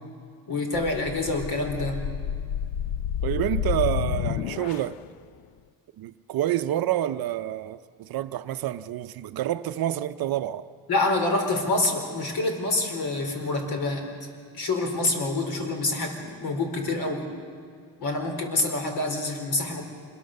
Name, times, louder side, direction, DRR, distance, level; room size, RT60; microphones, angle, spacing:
voice 1, 0.5-2.0 10.9-14.1 14.5-17.3 18.0-19.9, left 2 dB, 55° left, 4.3 m, -27 dB
sound 1, 0.7-5.1, left 10 dB, 75° left, 0.7 m, -30 dB
voice 2, 3.2-5.0 6.0-10.7, right 12 dB, 55° right, 0.7 m, -28 dB
26.5 x 22.0 x 6.7 m
cardioid pair, 135°, 44 cm